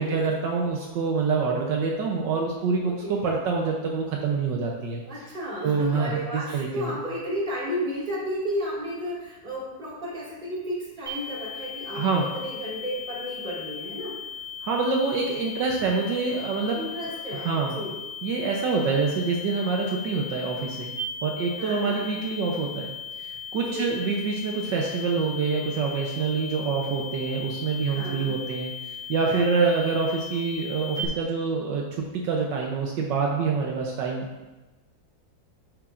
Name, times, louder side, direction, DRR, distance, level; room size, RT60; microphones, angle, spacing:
voice 1, 0.0-5.3 5.6-7.0 11.9-12.3 14.6-16.8 17.3-17.8 18.2-20.9 21.2-22.9 23.2-34.5, right 4 dB, 75° right, 0 dB, 1.4 m, -26 dB
voice 2, 2.8-3.2 5.0-14.2 16.7-18.0 21.6-22.1 23.6-24.0 27.9-28.4 29.2-29.4, equal, 25° right, -7 dB, 2.3 m, -33 dB
sound 1, 11.1-31.1, left 5 dB, ahead, 1.6 m, -37 dB
8.2 x 8.1 x 2.5 m, 1.1 s
omnidirectional pair, 2.0 m